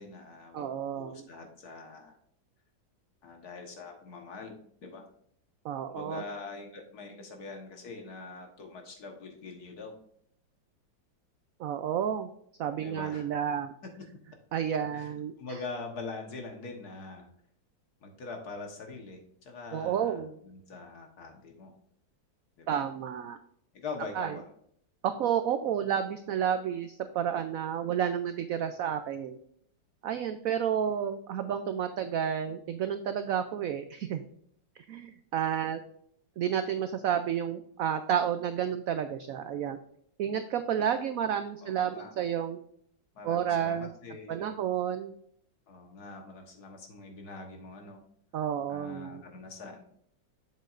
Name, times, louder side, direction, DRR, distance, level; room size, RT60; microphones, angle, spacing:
voice 1, 0.0-0.7 1.0-2.2 3.2-5.0 5.9-9.9 12.8-13.3 13.8-14.1 14.9-17.3 18.0-21.7 22.6-22.9 23.7-24.5 41.6-42.1 43.2-44.6 45.7-48.0 48.7-49.9, left 3 dB, 60° left, 3 dB, 1.7 m, -43 dB
voice 2, 0.5-1.3 5.6-6.2 11.6-12.3 12.6-13.7 14.5-15.6 19.7-20.4 22.7-23.4 24.2-24.3 25.0-29.4 30.0-34.2 34.9-35.8 36.4-39.8 40.2-42.6 43.2-43.9 44.3-45.1 48.3-49.2, right 9 dB, 85° right, 9 dB, 0.7 m, -31 dB
7.5 x 7.2 x 2.5 m, 0.66 s
omnidirectional pair, 2.0 m